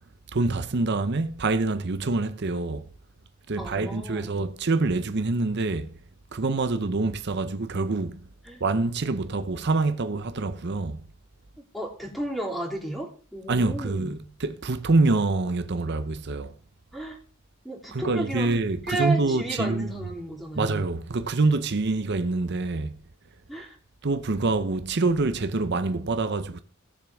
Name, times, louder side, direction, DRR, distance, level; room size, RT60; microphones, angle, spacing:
voice 1, 0.3-2.8 3.5-5.9 6.3-8.2 8.6-11.0 13.5-16.5 17.9-19.9 20.6-23.0 24.0-26.6, right 3 dB, 55° right, 0.7 m, -26 dB
voice 2, 3.6-4.3 8.4-8.6 11.7-14.2 16.9-17.2 17.6-18.5 18.9-20.7 23.5-23.7, right 1 dB, ahead, 3.2 m, -33 dB
18.5 x 7.0 x 3.6 m
head